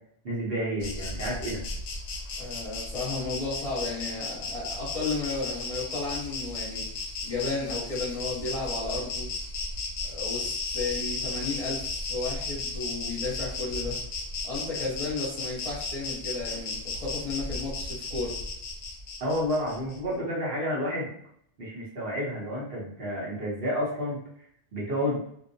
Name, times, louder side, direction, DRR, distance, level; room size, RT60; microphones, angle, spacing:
voice 1, 0.2-1.6 19.2-21.1 21.6-24.2 24.7-25.2, equal, 65° right, -6 dB, 1.1 m, -30 dB
Insect, 0.8-20.0, left 3 dB, 65° left, 0.7 m, -35 dB
voice 2, 2.4-6.9 7.3-9.3 10.0-14.0 14.4-18.4, left 3 dB, 35° left, -7 dB, 0.9 m, -33 dB
2.6 x 2.1 x 2.6 m, 0.68 s
omnidirectional pair, 1.1 m